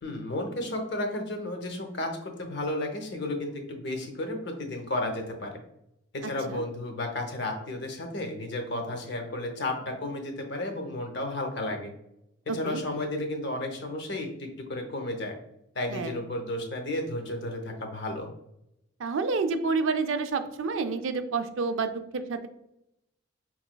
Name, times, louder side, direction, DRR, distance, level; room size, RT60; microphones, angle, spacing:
voice 1, 0.0-5.5 6.1-11.9 12.5-15.3 15.7-18.3, left 1 dB, 55° left, 3 dB, 0.7 m, -33 dB
voice 2, 6.2-6.6 12.5-12.8 15.9-16.2 19.0-22.5, right 4 dB, 65° right, 8 dB, 0.4 m, -29 dB
5.0 x 3.0 x 2.2 m, 0.81 s
head